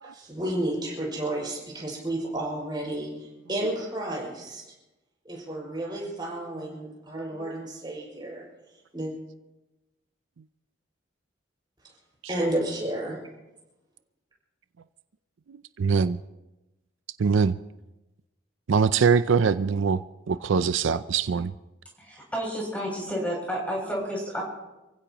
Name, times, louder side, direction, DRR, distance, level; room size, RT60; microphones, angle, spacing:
voice 1, 0.0-4.6 5.2-8.5 8.9-9.1 11.8-11.9 12.3-13.2, right 1 dB, 20° right, 6.1 m, -31 dB
voice 2, 15.5-16.2 17.2-17.6 18.7-20.0 20.3-21.5, right 5 dB, 80° right, 0.5 m, -23 dB
voice 3, 22.0-24.4, equal, 5° left, 7.1 m, -31 dB
28.0 x 16.0 x 3.0 m
head